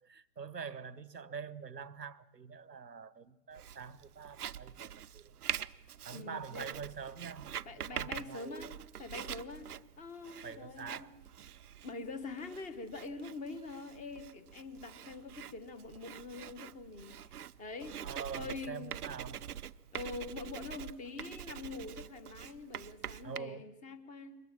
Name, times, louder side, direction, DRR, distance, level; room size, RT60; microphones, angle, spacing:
voice 1, 0.0-5.3 6.0-8.7 10.4-11.2 18.0-19.4 23.2-23.7, right 6 dB, 85° right, 1.0 m, -45 dB
Writing, 3.5-23.4, right 10 dB, 65° right, 0.7 m, -45 dB
voice 2, 6.1-6.7 7.6-11.1 11.8-17.9 18.3-19.0 19.9-24.4, left 3 dB, 15° left, 1.2 m, -45 dB
22.5 x 20.5 x 7.5 m
figure-of-eight pair, 115°, 48 cm